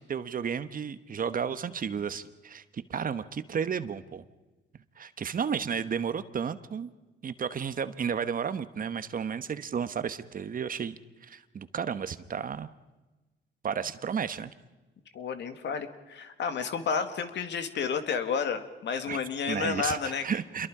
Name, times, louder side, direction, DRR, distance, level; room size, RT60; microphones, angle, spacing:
voice 1, 0.0-4.2 5.0-6.9 7.2-12.7 13.6-14.5 19.1-19.2 19.5-20.7, right 7 dB, 45° right, 12 dB, 1.2 m, -33 dB
voice 2, 15.1-20.2, left 6 dB, 65° left, 8 dB, 2.1 m, -31 dB
27.5 x 22.5 x 4.9 m, 1.1 s
cardioid pair, 90°, 20 cm